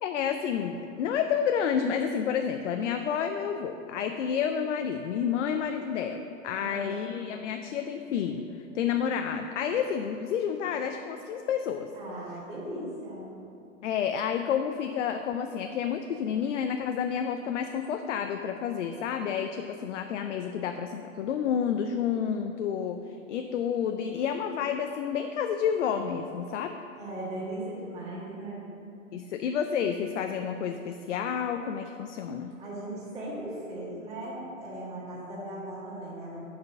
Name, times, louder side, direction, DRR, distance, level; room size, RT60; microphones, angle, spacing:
voice 1, 0.0-11.9 13.8-23.0 23.3-26.8 29.1-32.5, left 7 dB, 65° left, 6 dB, 0.5 m, -30 dB
voice 2, 6.5-7.0 11.9-13.3 26.9-28.7 32.6-36.4, right 1 dB, 15° right, -9 dB, 1.6 m, -38 dB
6.9 x 5.0 x 5.8 m, 2.8 s
hypercardioid pair, 150°, 40 cm